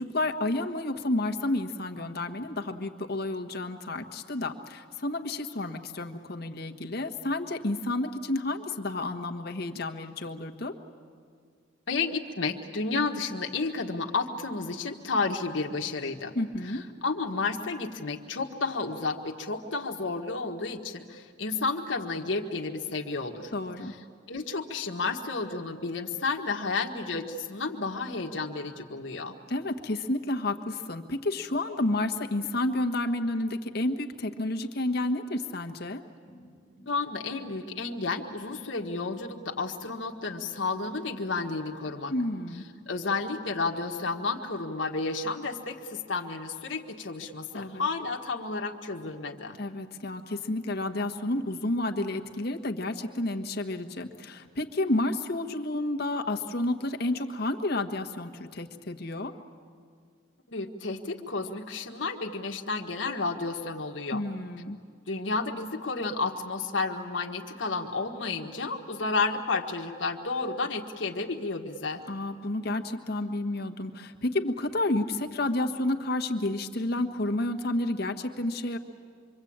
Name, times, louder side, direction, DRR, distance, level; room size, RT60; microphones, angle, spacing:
voice 1, 0.0-10.7 16.3-16.8 23.5-23.9 29.5-36.0 42.1-42.6 47.5-47.9 49.6-59.3 64.1-64.8 72.1-78.8, left 2 dB, 55° left, 5 dB, 1.4 m, -30 dB
voice 2, 11.9-16.3 16.6-23.5 23.8-24.0 24.3-29.4 36.9-42.1 42.9-49.6 60.5-64.2 65.1-72.0, left 3 dB, 80° left, 2 dB, 1.6 m, -31 dB
sound 1, 36.3-43.9, equal, 50° right, 6.7 m, -55 dB
26.0 x 24.0 x 8.8 m, 2.1 s
head